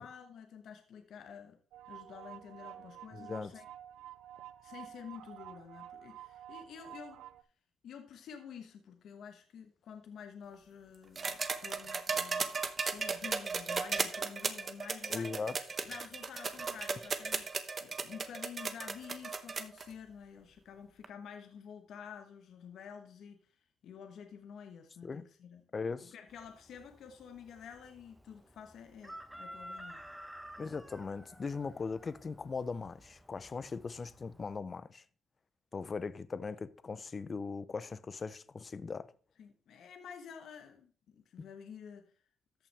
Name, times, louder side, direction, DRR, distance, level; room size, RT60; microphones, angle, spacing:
voice 1, 0.0-1.6 1.9-3.6 4.6-7.2 7.8-12.5 12.8-15.4 15.9-23.4 23.8-25.6 26.0-30.0 39.4-42.1, left 7 dB, 70° left, 1.1 m, -50 dB
sound 1, 1.7-7.4, right 12 dB, 85° right, 0.5 m, -50 dB
voice 2, 3.1-3.5 15.1-15.5 25.0-25.2 25.7-26.1 30.6-35.0 35.7-39.1 41.4-41.5, left 4 dB, 35° left, 0.6 m, -39 dB
sound 2, 11.2-19.8 21.0-21.1, right 4 dB, 40° right, 0.9 m, -35 dB
Chicken rooster, 26.3-34.6, equal, 5° right, 1.0 m, -53 dB
13.5 x 5.7 x 3.4 m
cardioid pair, 90°, 0 cm